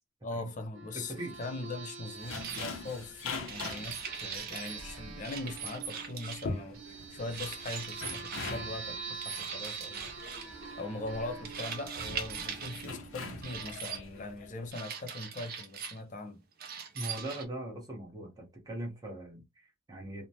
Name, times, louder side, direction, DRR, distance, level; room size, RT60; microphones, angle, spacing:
voice 1, 0.2-10.1 10.8-16.4, left 2 dB, 40° left, 0.5 m, -41 dB
sound 1, 0.7-13.9, right 5 dB, 75° right, 0.8 m, -46 dB
voice 2, 0.9-1.3 16.9-20.3, right 1 dB, 20° right, 0.9 m, -40 dB
sound 2, 2.2-14.7, left 3 dB, 90° left, 0.6 m, -44 dB
sound 3, 2.3-2.7 3.5-4.8 5.2-6.6 7.3-8.6 9.2-10.5 11.4-12.9 13.4-14.0 14.7-16.0 16.6-17.4, right 6 dB, 50° right, 0.5 m, -41 dB
3.1 x 2.1 x 2.6 m
head